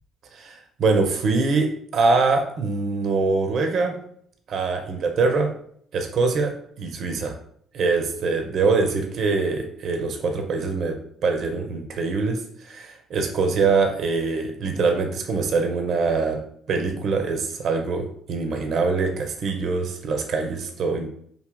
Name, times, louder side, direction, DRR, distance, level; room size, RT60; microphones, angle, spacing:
voice 1, 0.3-4.0 4.5-5.5 5.9-7.3 7.7-16.4 16.7-21.1, right 4 dB, 55° right, 4 dB, 0.5 m, -24 dB
4.7 x 2.7 x 2.2 m, 0.65 s
hypercardioid pair, 50°, 0 cm